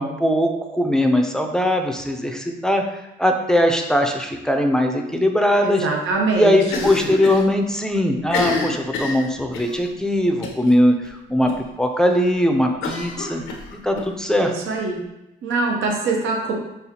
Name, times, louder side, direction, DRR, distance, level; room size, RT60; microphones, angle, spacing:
voice 1, 0.0-2.8 3.2-5.9 6.3-11.5 11.8-13.4 13.7-14.5, left 1 dB, 5° left, 4 dB, 0.4 m, -20 dB
voice 2, 5.6-6.9 14.3-15.0 15.4-16.5, right 3 dB, 80° right, 0 dB, 0.8 m, -23 dB
Cough, 6.7-7.5 7.7-7.8 8.2-9.8 10.4-10.7 11.0-11.1 11.5-11.6 12.8-14.1, left 4 dB, 90° left, 0.7 m, -27 dB
5.4 x 2.4 x 2.8 m, 0.93 s
cardioid pair, 90°, 20 cm